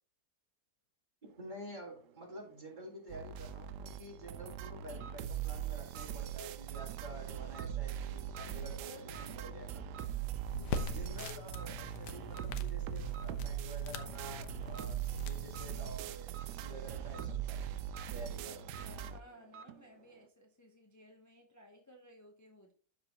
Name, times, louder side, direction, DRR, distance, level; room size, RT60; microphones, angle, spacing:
disk accessory, 1.2-20.3, right 7 dB, 65° right, 0.9 m, -56 dB
voice 1, 1.4-9.9 10.9-17.6 18.1-18.7, right 1 dB, 30° right, -1 dB, 2.2 m, -49 dB
sound 1, 3.1-19.2, right 10 dB, 90° right, 1.2 m, -41 dB
voice 2, 8.4-9.4 18.4-22.7, equal, 15° left, 1 dB, 0.6 m, -57 dB
sound 2, 10.5-16.0, left 5 dB, 85° left, 1.4 m, -43 dB
12.5 x 4.3 x 2.9 m, 0.44 s
omnidirectional pair, 1.7 m